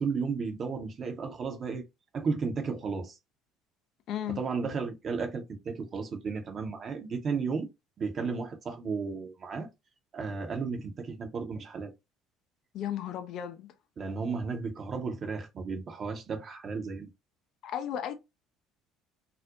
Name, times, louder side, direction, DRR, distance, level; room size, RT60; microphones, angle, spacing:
voice 1, 0.0-1.8 2.1-3.1 4.4-7.7 8.0-9.7 10.1-11.9 14.0-17.1, right 5 dB, 40° right, 0.6 m, -33 dB
voice 2, 4.1-4.4 12.7-13.7 17.6-18.1, left 10 dB, 50° left, 0.5 m, -34 dB
2.4 x 2.0 x 2.7 m
figure-of-eight pair, 60°, 0 cm